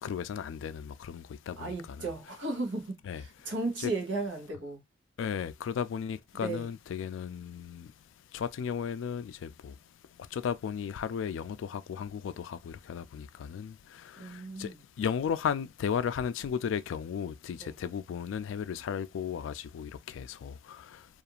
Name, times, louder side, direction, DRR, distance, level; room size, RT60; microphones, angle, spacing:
voice 1, 0.0-2.1 3.1-3.5 3.8-3.9 5.2-7.9 8.3-9.8 10.2-21.1, left 7 dB, 85° left, 0.3 m, -35 dB
voice 2, 1.6-4.8 6.3-6.7 14.2-14.8 17.6-17.8, right 3 dB, 70° right, 0.9 m, -35 dB
2.4 x 2.4 x 2.8 m
head